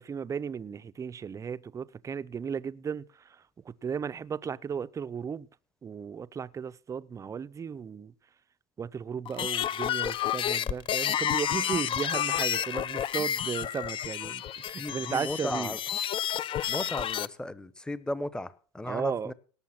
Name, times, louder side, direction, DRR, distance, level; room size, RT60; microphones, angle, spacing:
voice 1, 0.0-5.5 5.8-8.1 8.8-15.7 18.8-19.3, right 7 dB, 20° right, 0.6 m, -35 dB
sound 1, 9.3-17.3, left 10 dB, 35° left, 0.6 m, -30 dB
voice 2, 14.8-15.8 16.7-19.3, left 1 dB, 5° left, 1.0 m, -35 dB
18.0 x 7.3 x 5.9 m
supercardioid pair, 115°, 16 cm